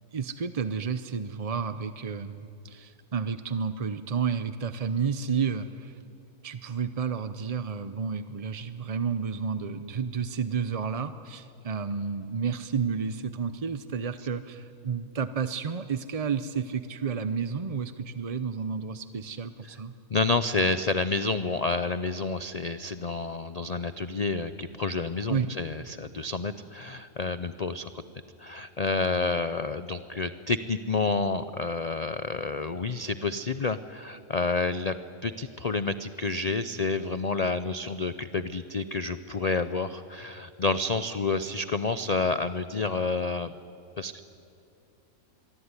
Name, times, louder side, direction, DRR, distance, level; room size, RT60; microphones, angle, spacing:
voice 1, 0.1-6.0 6.4-19.9 25.3-25.5, right 6 dB, 40° right, 11 dB, 0.6 m, -31 dB
voice 2, 20.1-28.0 28.4-34.9 35.2-43.5 44.0-44.2, left 3 dB, 40° left, 12 dB, 0.6 m, -29 dB
25.5 x 23.0 x 9.7 m, 2.6 s
omnidirectional pair, 1.5 m